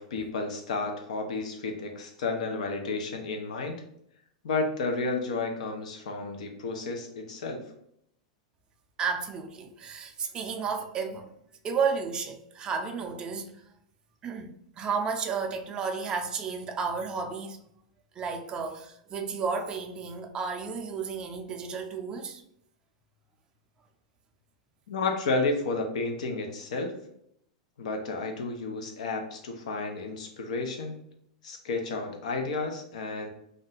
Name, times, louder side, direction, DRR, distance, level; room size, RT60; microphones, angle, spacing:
voice 1, 0.0-3.8 4.4-7.6 24.9-26.9 27.8-31.0 31.4-33.3, left 3 dB, 80° left, 0.7 m, -31 dB
voice 2, 9.0-11.3 11.6-13.6 14.2-17.6 18.2-22.4, right 5 dB, 20° right, 0.4 m, -32 dB
2.5 x 2.2 x 3.8 m
supercardioid pair, 135°, 4 cm